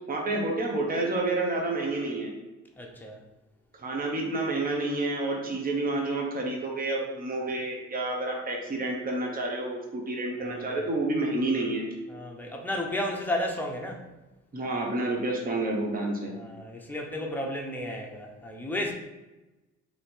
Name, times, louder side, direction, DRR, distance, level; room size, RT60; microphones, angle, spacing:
voice 1, 0.1-2.3 3.8-11.9 14.5-16.3, right 2 dB, 30° right, 0 dB, 0.9 m, -29 dB
voice 2, 2.8-3.2 10.4-10.8 12.1-14.1 16.3-18.9, left 1 dB, 5° left, 0 dB, 0.7 m, -33 dB
3.1 x 2.9 x 4.3 m, 1.1 s
cardioid pair, 90°, 30 cm